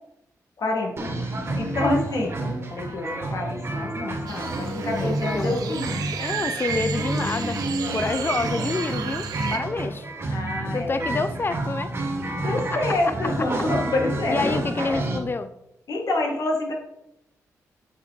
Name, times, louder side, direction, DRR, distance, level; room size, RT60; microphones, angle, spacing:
voice 1, 0.6-2.3 2.7-5.9 10.3-11.2 12.4-15.0 15.9-16.7, left 2 dB, 65° left, 2.1 m, -27 dB
sound 1, 1.0-15.2, right 2 dB, 40° right, 1.9 m, -29 dB
sound 2, 4.3-9.6, right 7 dB, 90° right, 0.8 m, -33 dB
voice 2, 5.0-7.6 7.9-10.1 10.7-11.9 12.7-12.8 14.3-15.5, left 3 dB, 35° left, 0.7 m, -28 dB
8.3 x 5.4 x 4.1 m
cardioid pair, 60°, 6 cm